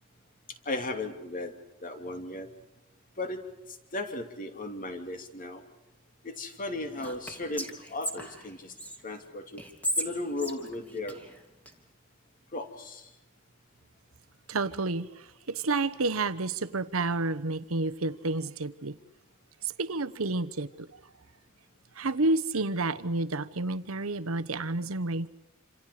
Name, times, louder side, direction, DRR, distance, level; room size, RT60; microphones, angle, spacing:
voice 1, 0.7-1.5 1.8-2.5 3.2-3.4 3.9-5.6 6.2-8.7 9.0-9.6 10.0-11.2 12.5-13.1, left 2 dB, 40° left, 2.9 m, -36 dB
Whispering, 7.0-9.0 9.6-11.7, equal, 5° left, 2.8 m, -35 dB
voice 2, 14.5-19.0 19.6-20.9 22.0-25.3, right 2 dB, 85° right, 1.1 m, -30 dB
28.0 x 27.0 x 5.0 m
head